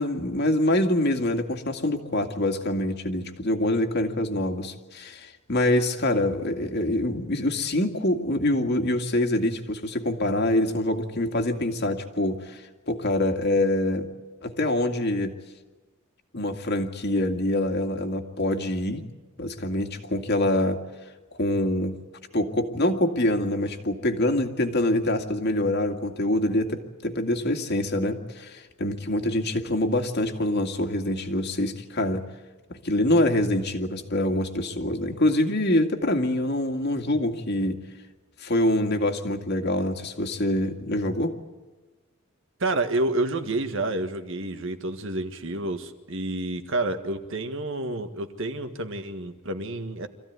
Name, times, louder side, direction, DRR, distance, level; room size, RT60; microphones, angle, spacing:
voice 1, 0.0-14.1 14.4-15.4 16.3-19.0 19.4-20.8 21.4-22.0 22.3-32.2 32.7-37.8 38.4-41.3, left 1 dB, 50° left, 4 dB, 2.2 m, -25 dB
voice 2, 42.6-50.1, right 2 dB, 60° right, 8 dB, 1.7 m, -29 dB
25.5 x 15.5 x 9.5 m, 1.2 s
head